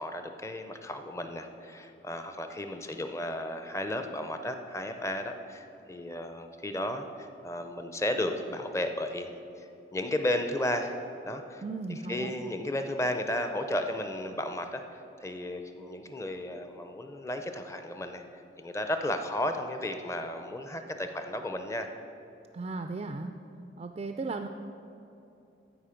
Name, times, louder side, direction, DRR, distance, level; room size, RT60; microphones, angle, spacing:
voice 1, 0.0-11.0 11.2-11.6 12.1-18.2 18.6-21.9, left 1 dB, 15° left, 7 dB, 0.5 m, -34 dB
voice 2, 11.6-12.3 22.5-23.3 23.8-24.5, right 3 dB, 35° right, 6 dB, 0.3 m, -36 dB
14.0 x 5.0 x 5.1 m, 2.9 s
head